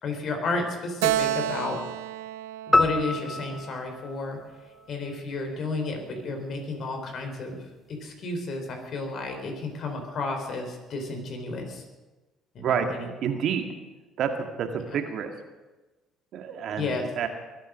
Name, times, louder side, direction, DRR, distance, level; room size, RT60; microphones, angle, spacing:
voice 1, 0.0-1.8 2.7-4.4 4.9-7.6 7.9-11.8 12.5-13.1 14.9-15.0 16.8-17.0, left 3 dB, 55° left, 4 dB, 4.2 m, -32 dB
Keyboard (musical), 1.0-4.5, right 13 dB, 90° right, 0.6 m, -31 dB
sound 1, 2.7-5.2, left 2 dB, 15° left, 1.0 m, -27 dB
voice 2, 13.2-13.6 14.2-15.3 16.3-17.3, right 8 dB, 65° right, 5 dB, 2.0 m, -28 dB
22.0 x 9.0 x 6.4 m, 1.2 s
supercardioid pair, 70°, 0 cm